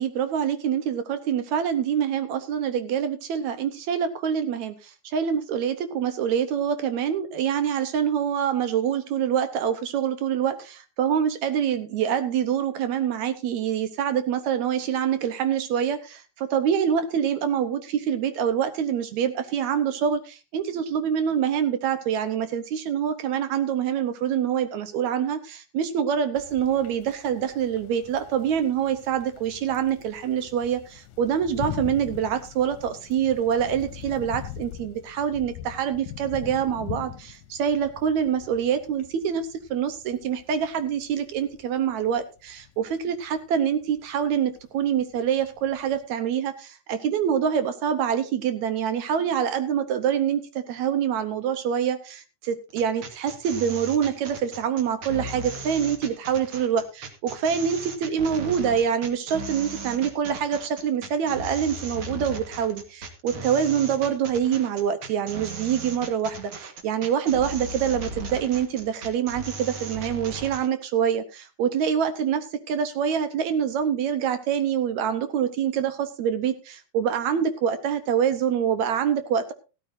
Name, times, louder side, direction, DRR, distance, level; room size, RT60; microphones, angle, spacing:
voice 1, 0.0-79.5, right 8 dB, 70° right, 10 dB, 2.2 m, -25 dB
sound 1, 26.4-46.0, left 12 dB, 80° left, 2.0 m, -42 dB
sound 2, 52.7-70.7, right 2 dB, 50° right, 2.1 m, -37 dB
16.0 x 13.0 x 2.6 m, 0.31 s
omnidirectional pair, 3.5 m